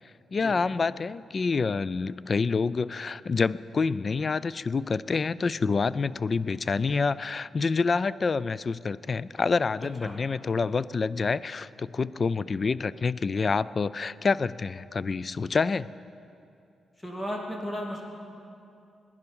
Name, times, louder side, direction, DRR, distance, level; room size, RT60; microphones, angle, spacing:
voice 1, 0.3-15.9, left 4 dB, 40° left, 18 dB, 0.3 m, -27 dB
voice 2, 17.0-18.1, equal, 20° left, -1 dB, 2.8 m, -34 dB
20.0 x 11.0 x 5.4 m, 2.6 s
cardioid pair, 90°, 0 cm